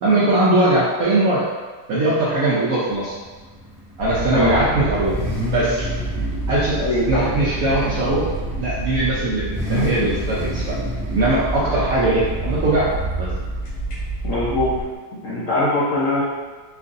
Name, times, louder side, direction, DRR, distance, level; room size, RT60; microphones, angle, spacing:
voice 1, 0.0-1.4 1.9-3.1 4.0-5.2 5.5-5.9 6.5-6.8 7.1-8.2 8.6-10.7 11.1-12.9 13.2-13.3, right 2 dB, 85° right, -8 dB, 0.7 m, -20 dB
Car / Idling / Accelerating revving vroom, 2.9-15.0, left 1 dB, 25° right, 0.8 m, -32 dB
sound 1, 4.0-14.8, right 2 dB, 80° left, 2.0 m, -28 dB
voice 2, 4.3-4.6 6.8-7.3 11.7-11.8 14.2-14.7 15.2-16.2, left 2 dB, 65° left, -9 dB, 0.8 m, -21 dB
4.5 x 2.5 x 2.5 m, 1.4 s
omnidirectional pair, 2.3 m